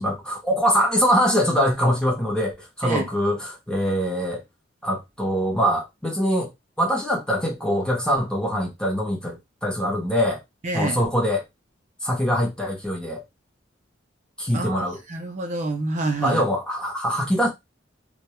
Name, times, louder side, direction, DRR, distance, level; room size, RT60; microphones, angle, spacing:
voice 1, 0.0-2.5 2.8-4.4 4.8-6.5 6.8-10.4 10.7-11.4 12.0-13.2 14.4-15.0 16.2-17.5, equal, 5° left, 0.7 m, -23 dB
voice 2, 10.6-11.0 14.5-16.4, right 2 dB, 40° right, 0.4 m, -27 dB
2.2 x 2.1 x 2.9 m
head